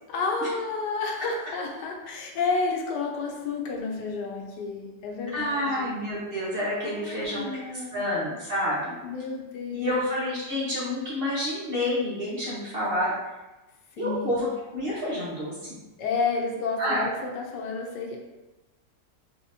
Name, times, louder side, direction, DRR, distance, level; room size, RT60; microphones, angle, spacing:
voice 1, 0.1-5.9 6.8-8.1 9.0-10.0 14.0-14.5 16.0-18.2, left 4 dB, 80° left, 1 dB, 1.3 m, -31 dB
voice 2, 5.3-7.6 7.9-8.9 9.7-13.1 14.0-15.6 16.8-17.0, left 1 dB, 40° right, -7 dB, 1.2 m, -28 dB
4.3 x 3.7 x 2.7 m, 1.1 s
omnidirectional pair, 1.8 m